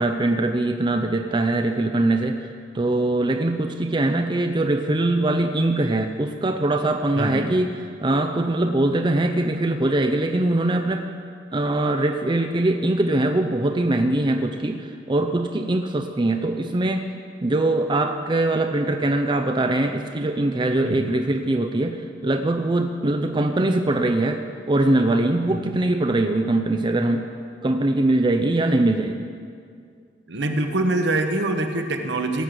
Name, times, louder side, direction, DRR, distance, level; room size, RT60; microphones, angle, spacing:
voice 1, 0.0-2.5 2.7-7.8 8.0-11.1 11.5-17.1 17.4-27.2 27.6-29.3, right 2 dB, 25° right, 5 dB, 0.6 m, -22 dB
voice 2, 7.1-7.5 20.8-21.1 25.5-25.8 30.3-32.4, right 2 dB, 70° right, 5 dB, 1.2 m, -25 dB
17.5 x 6.6 x 7.7 m, 2.2 s
head